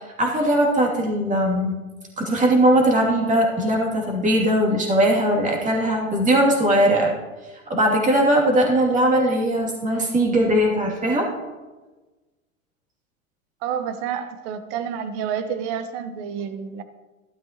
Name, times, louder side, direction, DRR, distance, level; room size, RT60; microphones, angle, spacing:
voice 1, 0.2-1.7 2.2-7.2 7.7-11.3, right 1 dB, 20° right, -1 dB, 2.7 m, -19 dB
voice 2, 13.6-16.8, right 8 dB, 45° right, 10 dB, 1.2 m, -29 dB
13.0 x 12.0 x 3.0 m, 1.2 s
hypercardioid pair, 95°, 42 cm